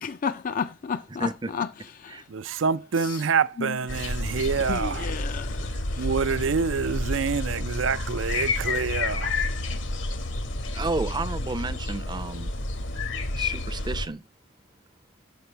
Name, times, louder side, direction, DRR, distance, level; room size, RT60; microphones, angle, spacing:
voice 1, 0.0-1.7 2.0-2.2 3.0-3.2 3.6-3.8 4.7-5.7 5.9-6.1, left 6 dB, 45° left, 0.4 m, -32 dB
voice 2, 1.2-1.5 2.1-2.2 10.8-12.5 13.4-14.2, right 3 dB, 25° right, 0.5 m, -31 dB
voice 3, 2.3-5.1 6.0-9.4, right 5 dB, 75° right, 0.5 m, -26 dB
sound 1, 3.9-14.1, left 2 dB, 70° left, 1.2 m, -30 dB
8.1 x 5.9 x 4.4 m
head